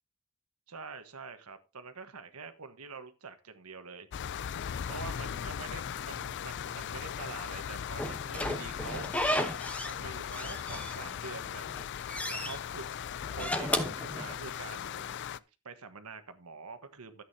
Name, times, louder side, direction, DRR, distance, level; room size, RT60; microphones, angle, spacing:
voice 1, 0.7-4.1 4.9-9.4 9.8-11.8 12.3-12.9 13.4-17.2, right 4 dB, 80° right, 9 dB, 1.3 m, -46 dB
sound 1, 4.1-15.4, left 8 dB, 55° left, 0.4 m, -38 dB
Slam / Squeak, 8.0-10.0 10.3-11.3 11.7-12.6 13.2-14.8, left 1 dB, 5° left, 0.9 m, -34 dB
13.0 x 8.7 x 2.8 m, 0.29 s
head